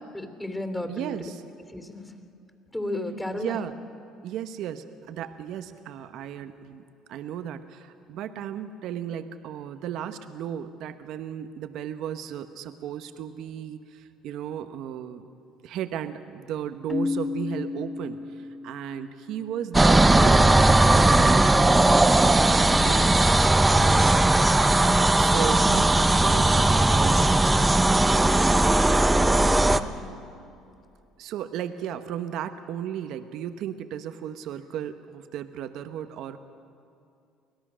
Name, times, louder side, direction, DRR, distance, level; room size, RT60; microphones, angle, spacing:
voice 1, 0.0-1.2 1.7-2.0 2.7-3.6 24.1-24.7 29.1-30.2, left 1 dB, 10° left, 6 dB, 3.0 m, -34 dB
voice 2, 0.8-1.4 3.3-3.8 4.2-6.8 7.1-15.2 15.6-23.1 23.7-24.1 25.1-28.1 31.2-36.4, right 9 dB, 65° right, 10 dB, 0.9 m, -35 dB
Keyboard (musical), 16.9-19.5, left 4 dB, 30° left, 1.2 m, -32 dB
sound 1, 19.7-29.8, right 2 dB, 15° right, 0.8 m, -18 dB
24.5 x 17.5 x 6.3 m, 2.5 s
supercardioid pair, 80°, 0 cm